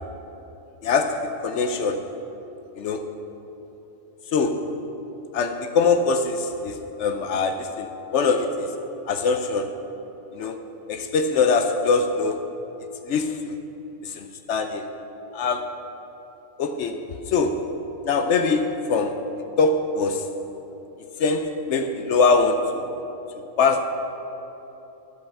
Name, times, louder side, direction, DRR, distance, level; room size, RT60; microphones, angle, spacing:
voice 1, 0.8-2.1 2.8-3.1 4.3-4.7 5.3-8.7 9.1-9.8 10.3-10.6 10.9-12.4 13.1-13.5 14.0-14.9 15.3-15.8 16.6-17.0 17.3-17.6 18.0-19.2 19.6-20.3 21.2-22.8 23.6-23.8, left 4 dB, 65° left, 6 dB, 0.9 m, -23 dB
11.0 x 5.4 x 6.9 m, 3.0 s
omnidirectional pair, 1.4 m